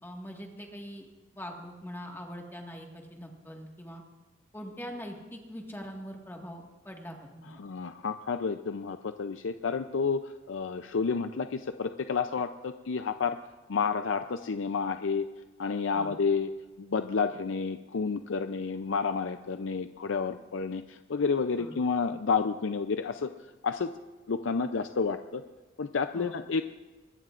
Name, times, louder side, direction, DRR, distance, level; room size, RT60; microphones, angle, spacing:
voice 1, 0.0-1.1 1.3-4.0 4.5-7.5 15.9-16.1 21.6-21.7 26.1-26.4, equal, 10° left, 0 dB, 1.7 m, -42 dB
voice 2, 7.6-13.4 13.7-15.3 15.6-16.5 16.8-23.3 23.6-23.9 24.3-25.4 25.8-26.6, left 5 dB, 90° left, 8 dB, 0.5 m, -30 dB
24.5 x 20.0 x 2.5 m, 1.3 s
head